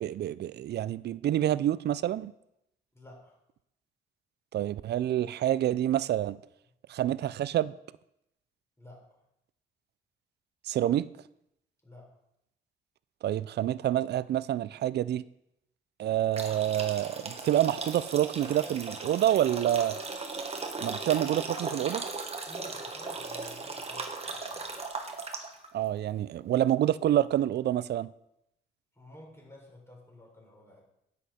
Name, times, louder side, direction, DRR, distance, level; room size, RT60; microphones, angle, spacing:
voice 1, 0.0-2.3 4.5-6.4 6.9-7.7 10.6-11.1 13.2-15.2 16.0-20.0 20.8-22.0 25.7-28.1, right 12 dB, 55° right, 18 dB, 0.4 m, -27 dB
voice 2, 2.9-3.4 8.8-9.0 11.8-12.1 22.4-24.9 28.9-30.8, left 1 dB, 15° left, -2 dB, 4.2 m, -51 dB
sound 1, 16.3-25.7, right 3 dB, 30° right, 1.4 m, -37 dB
9.9 x 8.4 x 4.3 m, 0.82 s
cardioid pair, 90°, 20 cm